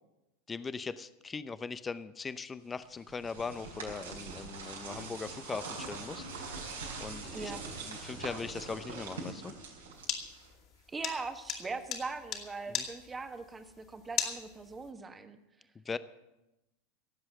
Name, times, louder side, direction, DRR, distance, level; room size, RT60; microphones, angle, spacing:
voice 1, 0.5-6.3 6.6-7.5 7.8-9.5 12.7-12.9 15.7-16.0, left 5 dB, 20° left, 15 dB, 0.7 m, -40 dB
sound 1, 2.8-10.6, right 3 dB, 80° right, 4.5 m, -43 dB
sound 2, 10.0-14.9, left 8 dB, 45° left, 2.5 m, -37 dB
voice 2, 10.9-15.4, right 4 dB, 20° right, 8 dB, 1.4 m, -40 dB
17.5 x 7.7 x 7.8 m, 0.97 s
hypercardioid pair, 90°, 0 cm